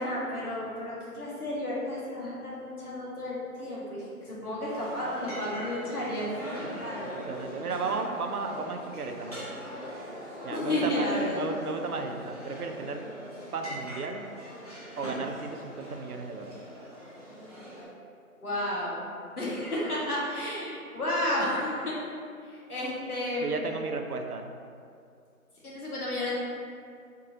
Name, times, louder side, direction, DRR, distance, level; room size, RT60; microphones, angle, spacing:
voice 1, 0.0-7.2 10.5-11.4 18.4-19.0 19.4-22.0 22.4-23.7 25.6-26.3, left 1 dB, 85° left, -6 dB, 1.4 m, -32 dB
sound 1, 4.7-17.8, equal, 25° left, 0.8 m, -41 dB
voice 2, 7.1-9.7 10.4-13.0 13.5-14.3 15.0-16.5 23.4-24.5, right 4 dB, 85° right, 4 dB, 0.6 m, -34 dB
4.6 x 3.8 x 2.6 m, 2.4 s
figure-of-eight pair, 170°, 43 cm